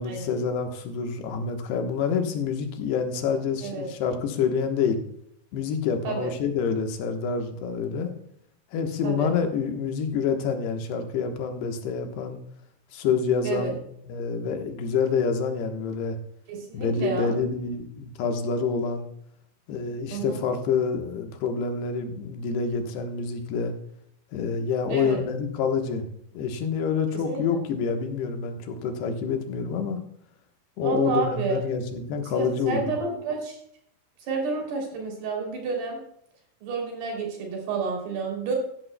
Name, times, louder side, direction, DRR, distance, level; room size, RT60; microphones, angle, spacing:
voice 1, 0.0-5.0 5.5-8.1 8.7-12.4 12.9-13.8 14.1-16.2 16.7-19.1 19.7-23.7 24.3-26.1 26.4-30.0 30.8-32.9, left 5 dB, 85° left, 5 dB, 3.4 m, -27 dB
voice 2, 16.5-17.3 20.1-20.4 24.9-25.2 27.3-27.6 30.8-31.6 32.3-33.6 34.2-36.0 36.6-38.5, right 4 dB, 85° right, 1 dB, 5.2 m, -30 dB
15.0 x 11.0 x 2.2 m, 0.71 s
omnidirectional pair, 4.6 m